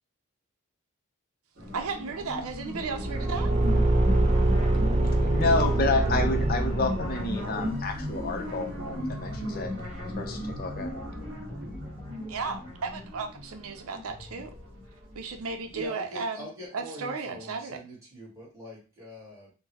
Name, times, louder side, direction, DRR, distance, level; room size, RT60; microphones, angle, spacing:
sound 1, 1.6-15.4, left 1 dB, 50° right, 1.5 m, -36 dB
voice 1, 1.7-3.5 12.3-14.5 15.1-16.5 16.7-17.8, right 4 dB, 80° right, 6 dB, 0.5 m, -34 dB
Car / Engine, 2.8-7.4, right 2 dB, 30° right, 0.4 m, -24 dB
voice 2, 5.3-8.7 9.1-9.7 10.2-10.9, left 3 dB, 45° left, 5 dB, 0.5 m, -29 dB
sound 2, 6.9-12.1, equal, 5° left, 0.8 m, -47 dB
voice 3, 15.7-19.5, right 1 dB, 15° right, -6 dB, 1.3 m, -43 dB
3.7 x 2.0 x 2.8 m, 0.33 s
head